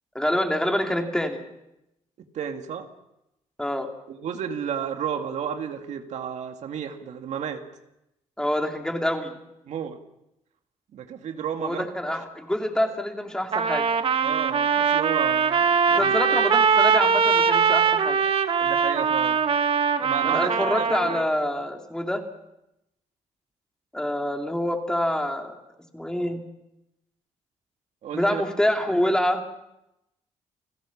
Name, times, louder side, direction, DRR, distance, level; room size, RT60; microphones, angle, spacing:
voice 1, 0.1-1.4 3.6-3.9 8.4-9.3 11.6-13.8 15.9-18.2 20.2-22.2 23.9-25.6 25.9-26.4 28.1-29.4, left 1 dB, 5° left, 3 dB, 3.0 m, -26 dB
voice 2, 2.3-2.9 4.1-7.6 9.6-10.0 10.9-11.9 12.1-12.2 14.2-16.1 18.6-19.4 20.0-21.2 28.0-28.4, right 8 dB, 70° right, 5 dB, 2.2 m, -32 dB
Trumpet, 13.5-21.3, right 6 dB, 50° right, 1.4 m, -22 dB
29.5 x 16.5 x 7.3 m, 0.88 s
cardioid pair, 110°, 12 cm